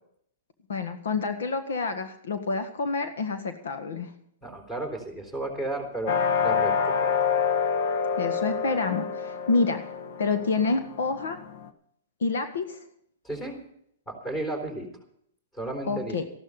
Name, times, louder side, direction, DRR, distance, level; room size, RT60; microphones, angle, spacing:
voice 1, 0.7-4.1 8.2-9.9 10.2-11.4 12.2-12.8 15.9-16.2, left 4 dB, 75° left, 8 dB, 1.6 m, -28 dB
voice 2, 4.4-7.3 13.2-13.6 14.1-14.9 15.5-16.3, right 2 dB, 10° left, 6 dB, 3.8 m, -34 dB
sound 1, 6.1-11.7, left 6 dB, 60° left, 1.4 m, -27 dB
14.0 x 12.0 x 5.7 m, 0.69 s
hypercardioid pair, 145°, 0 cm